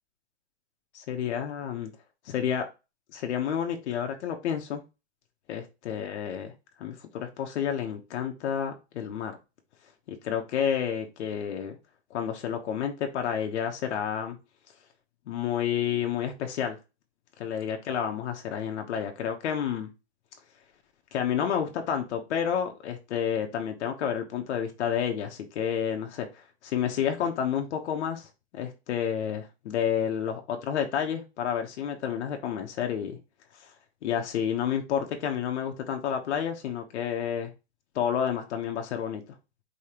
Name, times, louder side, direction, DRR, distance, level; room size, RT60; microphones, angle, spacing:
voice 1, 1.1-1.9 2.2-2.7 3.1-4.8 5.5-6.5 6.8-9.4 10.1-11.8 12.1-14.4 15.3-16.8 17.4-19.9 21.1-33.2 33.5-33.7 34.0-37.5 37.9-39.2, left 8 dB, 70° left, 3 dB, 1.0 m, -30 dB
5.0 x 3.1 x 2.9 m, 0.27 s
hypercardioid pair, 145°, 35 cm